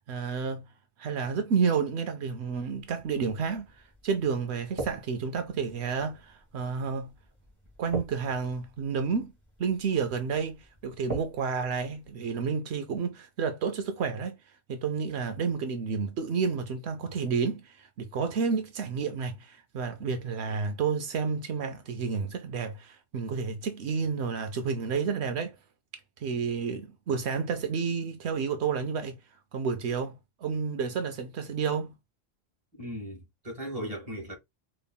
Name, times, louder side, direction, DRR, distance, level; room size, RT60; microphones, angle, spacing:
voice 1, 0.1-0.7 1.0-7.1 7.8-9.3 9.6-25.6 26.2-29.2 29.5-31.9, right 5 dB, 80° right, 0.9 m, -30 dB
Alcantarillado ciego, 2.5-12.1, right 2 dB, 10° right, 2.1 m, -44 dB
voice 2, 32.8-34.3, equal, 35° right, 2.0 m, -37 dB
5.2 x 3.0 x 2.3 m
omnidirectional pair, 1.1 m